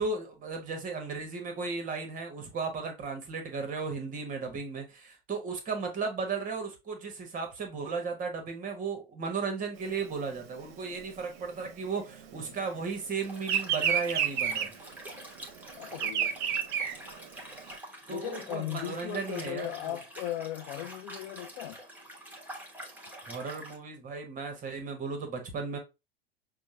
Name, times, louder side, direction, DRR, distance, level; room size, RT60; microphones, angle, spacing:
voice 1, 0.0-14.7 18.1-19.9 23.3-25.8, right 4 dB, 25° right, 1.2 m, -35 dB
Bird vocalization bird call bird song, 9.8-12.7 13.0-17.7, right 8 dB, 50° right, 0.7 m, -30 dB
Liquid, 13.2-23.8, right 1 dB, 5° right, 1.2 m, -46 dB
voice 2, 15.8-16.3 18.1-21.8, left 13 dB, 45° left, 0.4 m, -37 dB
5.9 x 2.2 x 2.7 m
figure-of-eight pair, 85°, 30 cm